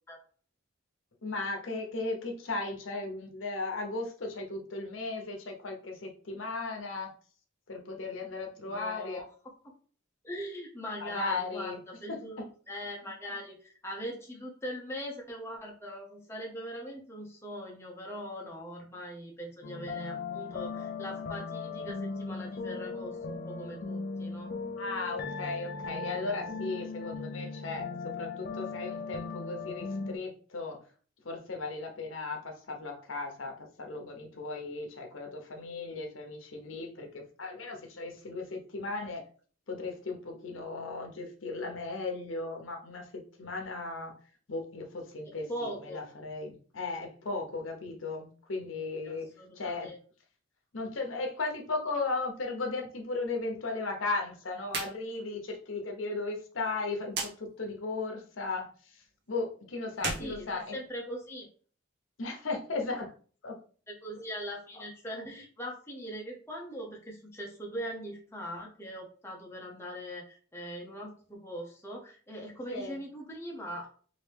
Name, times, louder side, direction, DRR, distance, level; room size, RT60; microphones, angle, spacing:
voice 1, 1.2-7.1 7.7-9.2 11.0-11.8 12.4-12.5 24.8-30.8 31.2-39.2 39.7-43.1 43.4-44.1 44.5-49.3 49.6-49.9 50.7-59.0 59.3-60.8 62.2-63.1 63.4-63.6 72.7-73.0, left 3 dB, 80° left, 3 dB, 0.8 m, -36 dB
voice 2, 8.7-9.7 10.2-24.5 45.3-46.0 49.0-50.0 60.2-61.5 63.9-73.9, equal, 15° left, -1 dB, 0.7 m, -41 dB
sound 1, 19.6-30.2, left 4 dB, 50° left, 0.4 m, -38 dB
sound 2, 54.6-55.0 55.3-55.4 57.1-57.3 59.9-61.2, right 3 dB, 55° right, 0.8 m, -36 dB
3.1 x 2.7 x 3.3 m, 0.42 s
head